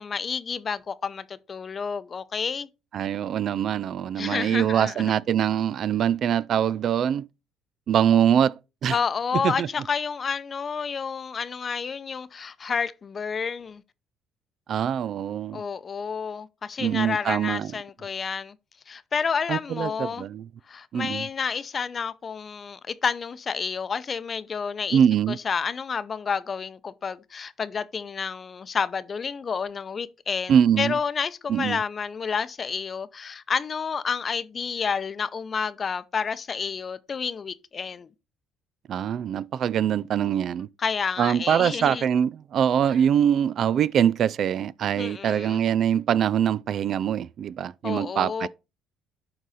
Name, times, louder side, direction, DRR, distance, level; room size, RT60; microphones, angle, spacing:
voice 1, 0.0-2.7 4.2-5.1 8.9-13.8 15.5-18.5 18.9-20.3 20.7-25.0 25.3-38.1 40.8-42.1 45.0-45.6 47.8-48.5, left 6 dB, 40° left, 0.6 m, -30 dB
voice 2, 2.9-7.2 7.9-9.0 9.4-9.7 14.7-15.6 16.8-17.7 19.5-20.5 20.9-21.3 24.9-25.4 30.5-30.9 31.5-31.8 38.9-40.7 41.2-48.5, right 9 dB, 60° right, 0.3 m, -23 dB
11.0 x 4.0 x 4.1 m
supercardioid pair, 85°, 0 cm